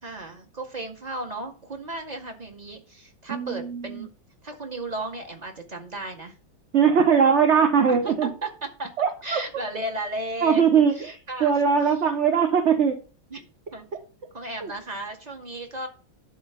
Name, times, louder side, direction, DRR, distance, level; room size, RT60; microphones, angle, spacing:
voice 1, 0.0-4.1 4.4-6.3 7.9-8.9 9.2-11.5 13.3-13.4 13.7-13.9 14.3-15.9, right 1 dB, 20° right, 4 dB, 2.1 m, -34 dB
voice 2, 3.3-4.1 6.7-8.3 9.0-9.4 10.4-12.9 14.6-14.7, right 7 dB, 40° right, 5 dB, 1.3 m, -21 dB
12.0 x 4.6 x 5.8 m, 0.35 s
omnidirectional pair, 2.2 m